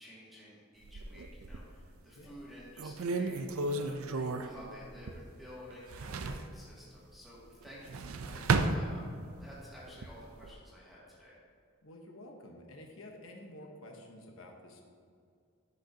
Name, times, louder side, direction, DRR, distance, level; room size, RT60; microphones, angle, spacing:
voice 1, 0.0-9.0 9.3-11.4, equal, ahead, -8 dB, 2.1 m, -52 dB
sound 1, 0.8-1.8 2.3-2.4 2.8-5.4 5.7-6.5 7.7-9.4 9.9-10.5, right 3 dB, 85° right, 0.5 m, -33 dB
voice 2, 11.8-14.8, left 1 dB, 75° left, 1 dB, 1.0 m, -50 dB
13.0 x 6.5 x 2.8 m, 2.2 s
head